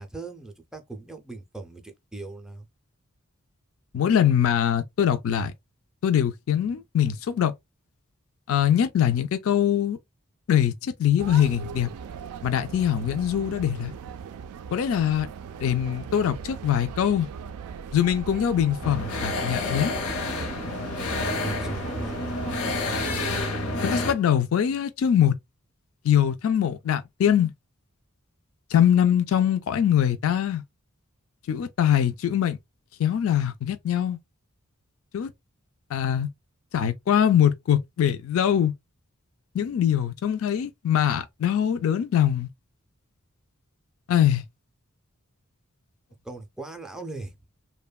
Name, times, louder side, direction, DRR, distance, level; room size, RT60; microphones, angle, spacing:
voice 1, 0.0-2.7 21.2-22.3 46.2-47.3, right 3 dB, 5° right, 0.4 m, -39 dB
voice 2, 3.9-5.5 6.0-7.5 8.5-10.0 10.5-11.9 12.4-13.9 14.7-15.3 15.6-17.3 17.9-19.9 23.8-25.4 26.0-27.5 28.7-30.6 31.5-32.6 33.0-34.2 35.1-35.3 35.9-36.3 36.7-38.7 39.5-42.5 44.1-44.4, left 9 dB, 65° left, 0.3 m, -23 dB
sound 1, 11.2-23.5, right 6 dB, 85° right, 0.3 m, -39 dB
sound 2, 18.8-24.1, left 2 dB, 85° left, 0.7 m, -29 dB
2.9 x 2.1 x 2.2 m
head